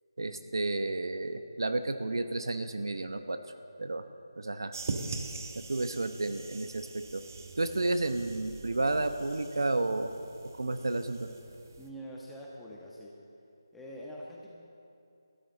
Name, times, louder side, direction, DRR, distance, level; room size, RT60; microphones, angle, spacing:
voice 1, 0.2-3.4 3.8-4.0 4.4-4.7 5.5-7.2 7.6-10.1 10.6-11.3, right 2 dB, 70° right, 8 dB, 1.1 m, -31 dB
sound 1, 4.7-11.9, right 3 dB, 45° right, 1.1 m, -42 dB
voice 2, 11.8-13.2 13.7-14.5, equal, 5° left, -5 dB, 1.4 m, -44 dB
18.5 x 13.5 x 4.1 m, 2.7 s
figure-of-eight pair, 160°, 2 cm